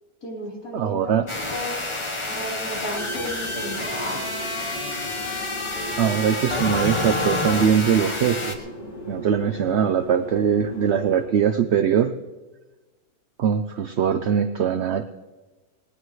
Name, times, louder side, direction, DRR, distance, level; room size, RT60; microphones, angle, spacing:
voice 1, 0.2-1.8 2.3-4.7, equal, 75° left, -3 dB, 4.3 m, -34 dB
voice 2, 0.7-1.2 6.0-8.6 9.1-12.1 13.4-15.1, right 8 dB, 55° right, 8 dB, 0.8 m, -21 dB
sound 1, 1.3-8.5, left 2 dB, 20° left, 1.1 m, -28 dB
sound 2, 2.9-11.3, right 1 dB, 55° left, 2.9 m, -38 dB
18.5 x 18.5 x 3.2 m, 1.2 s
omnidirectional pair, 1.6 m